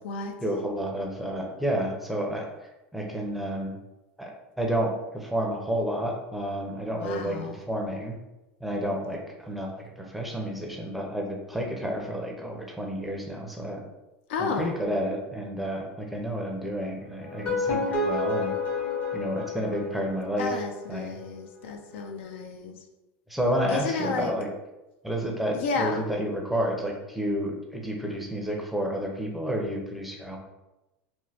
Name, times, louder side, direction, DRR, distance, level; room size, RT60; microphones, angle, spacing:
voice 1, 0.4-2.5 2.9-3.7 4.2-4.3 4.6-7.4 7.7-8.2 8.6-13.8 14.4-18.5 19.1-20.5 20.9-21.1 23.3-24.5 25.0-30.4, equal, ahead, 0 dB, 0.5 m, -30 dB
voice 2, 7.0-7.6 14.3-14.8 20.4-22.8 23.7-24.3 25.5-26.0, left 4 dB, 80° left, 4 dB, 0.4 m, -31 dB
sound 1, 17.2-20.4, left 3 dB, 50° left, 1.5 m, -29 dB
3.1 x 2.1 x 2.7 m, 1.0 s
supercardioid pair, 115°, 6 cm